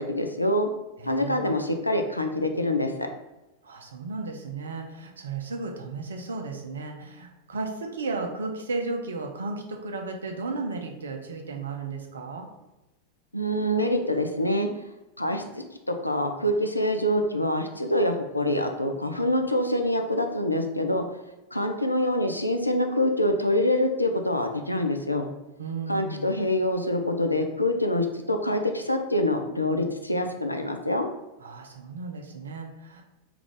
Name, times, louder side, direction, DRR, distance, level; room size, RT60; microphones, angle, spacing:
voice 1, 0.1-0.7 1.0-3.1 13.3-14.7 15.2-21.0 21.5-25.3 25.9-31.1, left 1 dB, 85° left, 5 dB, 0.3 m, -25 dB
voice 2, 1.0-1.5 3.6-12.5 25.6-26.3 31.4-33.0, right 3 dB, 70° right, 3 dB, 0.5 m, -34 dB
3.5 x 2.4 x 3.2 m, 1.0 s
figure-of-eight pair, 90°, 0 cm